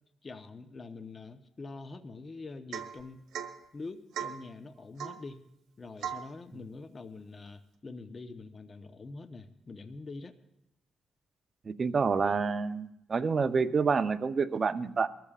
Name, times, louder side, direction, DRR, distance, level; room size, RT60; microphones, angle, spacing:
voice 1, 0.2-3.2 3.7-5.4 5.8-10.3, left 3 dB, 35° left, 8 dB, 0.9 m, -45 dB
Domestic sounds home sounds / Chink clink / Drip, 2.7-3.0 3.3-3.6 4.1-4.4 5.0-5.2 6.0-6.3, right 9 dB, 85° right, 1.4 m, -37 dB
voice 2, 11.7-15.1, right 5 dB, 40° right, 11 dB, 0.7 m, -28 dB
23.5 x 14.0 x 2.5 m, 0.84 s
cardioid pair, 90°, 0 cm